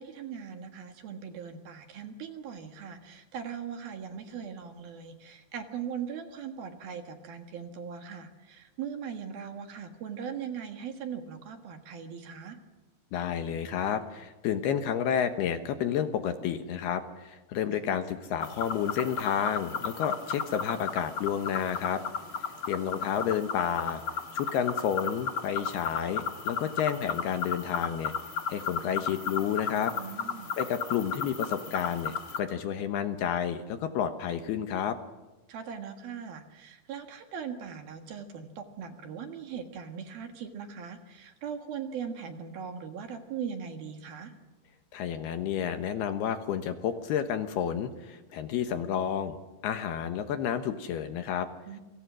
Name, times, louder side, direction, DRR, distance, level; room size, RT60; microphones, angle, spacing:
voice 1, 0.0-12.6 17.7-17.8 29.9-30.5 35.5-44.3 51.7-51.8, right 7 dB, 60° right, 6 dB, 3.2 m, -40 dB
voice 2, 13.1-22.0 22.7-24.0 24.3-28.1 28.5-29.9 30.6-35.0 44.9-49.4 49.6-51.5, left 8 dB, 70° left, 8 dB, 2.8 m, -30 dB
sound 1, 18.4-32.4, left 5 dB, 45° left, 1.7 m, -35 dB
29.0 x 25.5 x 6.3 m, 1.1 s
omnidirectional pair, 5.4 m